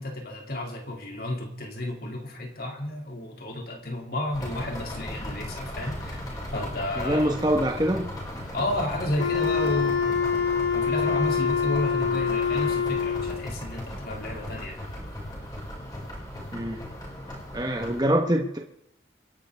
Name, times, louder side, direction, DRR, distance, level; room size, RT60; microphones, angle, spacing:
voice 1, 0.0-6.2 6.5-7.3 8.5-10.4 10.7-14.8, left 1 dB, 50° left, 2 dB, 3.0 m, -32 dB
sound 1, 4.3-18.0, equal, 20° left, 6.0 m, -37 dB
voice 2, 7.0-8.1 16.5-16.8 17.5-18.6, equal, 20° right, 2 dB, 1.4 m, -24 dB
Wind instrument woodwind instrument, 9.2-13.5, left 6 dB, 85° left, 2.2 m, -25 dB
28.5 x 11.5 x 3.6 m, 0.81 s
head